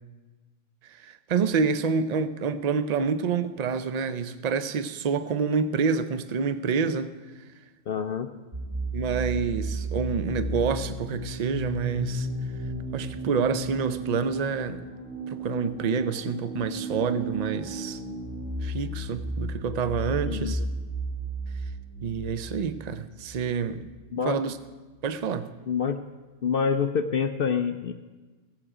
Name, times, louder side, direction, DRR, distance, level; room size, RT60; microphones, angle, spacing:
voice 1, 0.8-7.1 8.9-12.3 12.9-14.8 15.3-18.0 18.6-20.7 22.0-23.9 24.2-24.6 25.0-25.5, right 5 dB, 50° right, 11 dB, 0.5 m, -28 dB
voice 2, 7.9-8.3 20.2-20.5 24.1-24.4 25.7-26.0 26.4-27.9, left 6 dB, 60° left, 8 dB, 0.6 m, -26 dB
sound 1, 8.5-24.1, right 1 dB, 75° right, 3.9 m, -34 dB
16.5 x 7.8 x 4.9 m, 1.3 s
omnidirectional pair, 1.4 m